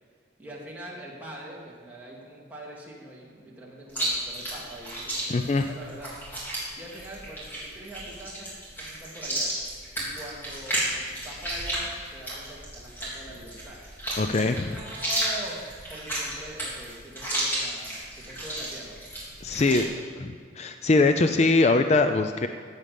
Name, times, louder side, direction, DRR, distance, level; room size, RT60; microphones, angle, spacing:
voice 1, 0.4-6.2 6.8-9.5 10.0-13.8 14.3-15.6 15.9-19.0 19.5-20.1, right 1 dB, 10° right, -5 dB, 2.6 m, -43 dB
Chewing mastication, 3.9-19.8, right 1 dB, 10° left, 3.5 m, -33 dB
voice 2, 5.3-5.6 14.2-14.8 19.4-19.9 20.2-20.3 20.6-22.5, left 3 dB, 35° left, 8 dB, 0.4 m, -22 dB
15.0 x 8.9 x 5.2 m, 2.1 s
head